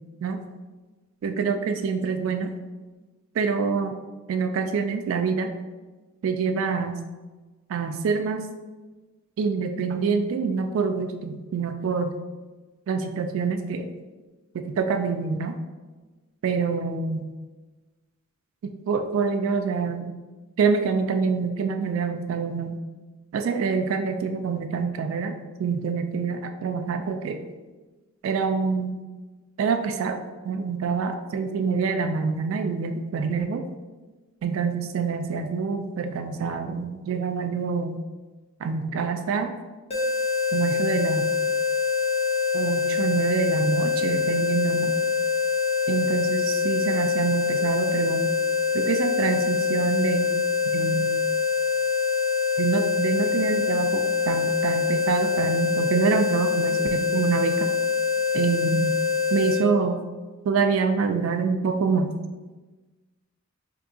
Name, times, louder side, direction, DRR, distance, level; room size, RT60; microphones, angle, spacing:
voice 1, 1.2-2.6 3.4-4.0 4.3-5.5 6.2-6.9 7.7-8.4 9.4-12.1 12.9-13.9 14.5-15.6 16.4-17.3 18.6-20.1 20.6-22.8 23.3-25.3 25.6-27.4 28.2-28.9 29.6-30.2 30.4-33.7 34.4-38.0 38.6-39.5 40.5-41.3 42.5-45.0 45.9-48.3 48.7-50.3 50.6-51.3 52.6-57.7 58.3-58.9 59.3-60.0 60.5-62.1, right 5 dB, 80° right, 7 dB, 0.3 m, -26 dB
sound 1, 39.9-59.6, left 6 dB, 30° left, 0.7 m, -24 dB
4.4 x 2.7 x 2.6 m, 1.2 s
head